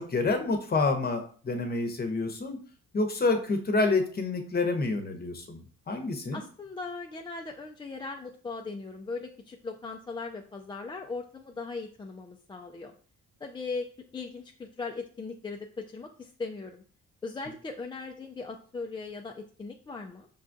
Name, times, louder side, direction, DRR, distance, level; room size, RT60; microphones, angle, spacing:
voice 1, 0.0-2.6 2.9-5.6 5.9-6.4, left 3 dB, 30° left, 5 dB, 0.8 m, -28 dB
voice 2, 6.3-12.9 13.4-16.8 17.2-20.3, left 4 dB, 15° left, 3 dB, 0.3 m, -39 dB
5.4 x 2.4 x 2.6 m, 0.44 s
cardioid pair, 90°, 30 cm